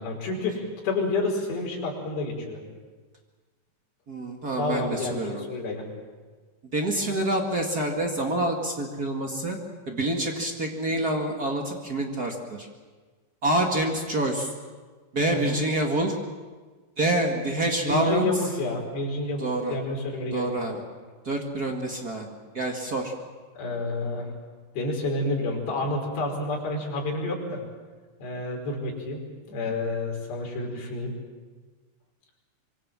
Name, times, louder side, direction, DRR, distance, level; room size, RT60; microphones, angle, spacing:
voice 1, 0.0-2.6 4.6-5.9 15.3-15.6 17.8-20.5 23.6-24.3 24.8-27.6 28.2-29.2 29.5-31.1, left 2 dB, 65° left, -1 dB, 7.2 m, -29 dB
voice 2, 4.1-5.4 6.7-9.6 9.9-12.7 13.4-14.5 15.1-16.1 17.0-18.3 19.4-19.7 20.3-20.8 21.2-22.3 22.5-23.1, right 1 dB, 50° right, 1 dB, 1.1 m, -27 dB
25.5 x 24.0 x 7.6 m, 1.4 s
omnidirectional pair, 5.3 m